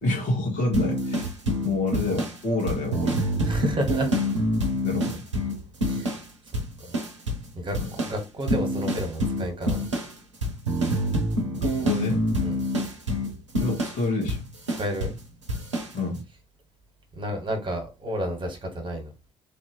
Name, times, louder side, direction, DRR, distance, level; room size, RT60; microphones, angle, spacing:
voice 1, 0.0-1.3 1.6-3.2 4.8-5.2 7.7-7.9 11.6-12.3 13.6-14.4 15.9-16.2, left 2 dB, 55° left, 1.7 m, -28 dB
sound 1, 0.7-6.3 6.5-7.5 7.7-15.2 15.5-15.9, equal, 90° right, 0.6 m, -27 dB
voice 2, 3.4-4.1 5.9-6.1 6.9-7.0 7.5-9.8 12.4-12.6 14.8-15.1 17.2-19.1, equal, 35° right, 1.5 m, -31 dB
3.3 x 2.8 x 3.1 m
figure-of-eight pair, 50°, 15 cm